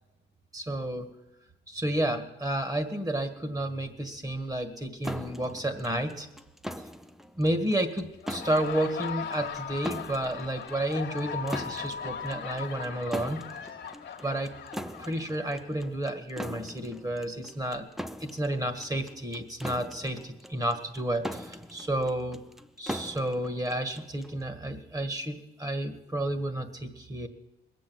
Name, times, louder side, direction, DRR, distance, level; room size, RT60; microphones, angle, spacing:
voice 1, 0.5-1.1 1.7-6.3 7.4-13.5 14.2-14.5 15.0-17.9 18.2-22.5 22.8-27.3, right 1 dB, 20° right, 9 dB, 1.7 m, -31 dB
sound 1, 5.0-24.4, equal, ahead, 0.6 m, -41 dB
Laughter, 8.1-15.8, left 7 dB, 60° left, 1.4 m, -39 dB
21.0 x 7.7 x 7.7 m, 0.96 s
cardioid pair, 90°, 20 cm